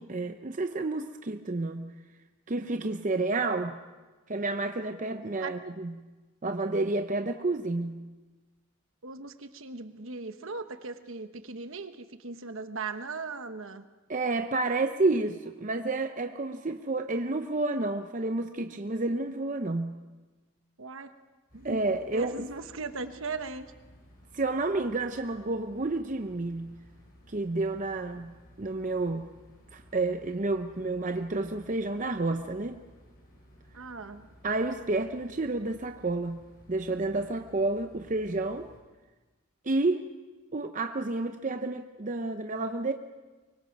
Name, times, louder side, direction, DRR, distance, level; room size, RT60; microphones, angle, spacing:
voice 1, 0.0-1.9 2.5-3.8 4.3-5.9 6.4-8.0 14.1-20.0 21.6-22.3 24.3-26.7 27.3-29.3 29.7-32.8 34.4-38.7 39.6-40.1 40.5-42.9, right 2 dB, 35° right, 7 dB, 0.6 m, -30 dB
voice 2, 9.0-13.9 20.8-21.1 21.5-21.8 22.1-23.7 33.7-34.3, right 4 dB, 65° right, 9 dB, 1.1 m, -38 dB
sound 1, 21.5-38.8, equal, 40° left, 5.9 m, -56 dB
24.0 x 23.5 x 5.3 m, 1.2 s
head